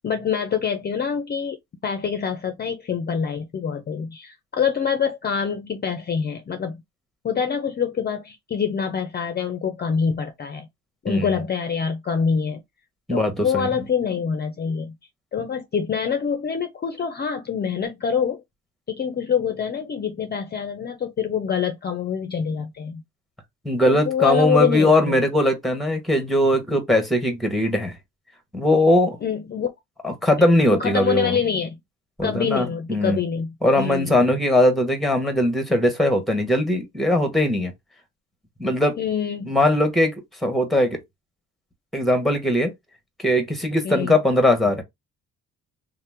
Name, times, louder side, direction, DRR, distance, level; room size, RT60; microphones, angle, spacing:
voice 1, 0.0-1.6 1.8-6.8 7.2-10.7 11.0-12.6 13.1-14.9 15.3-18.4 18.9-23.0 23.8-25.2 29.2-29.7 30.7-31.8 32.2-34.2 39.0-39.6 43.8-44.2, left 7 dB, 35° left, 0.5 m, -25 dB
voice 2, 11.1-11.4 13.1-13.7 23.6-27.9 28.5-29.2 30.0-31.4 32.2-33.2 33.6-37.7 38.6-39.0 39.5-40.1 40.4-41.0 41.9-42.7 43.2-44.8, left 1 dB, ahead, 1.0 m, -20 dB
2.8 x 2.1 x 3.4 m
cardioid pair, 90°, 30 cm